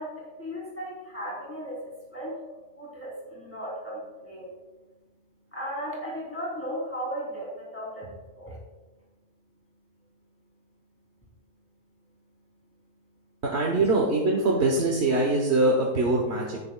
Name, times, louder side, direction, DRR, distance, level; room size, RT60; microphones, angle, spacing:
voice 1, 0.0-2.4 2.8-4.5 5.5-8.6 13.2-13.3, equal, 10° left, -6 dB, 3.6 m, -36 dB
voice 2, 13.4-16.6, right 2 dB, 50° right, -1 dB, 1.5 m, -23 dB
18.0 x 6.9 x 2.4 m, 1.2 s
omnidirectional pair, 1.4 m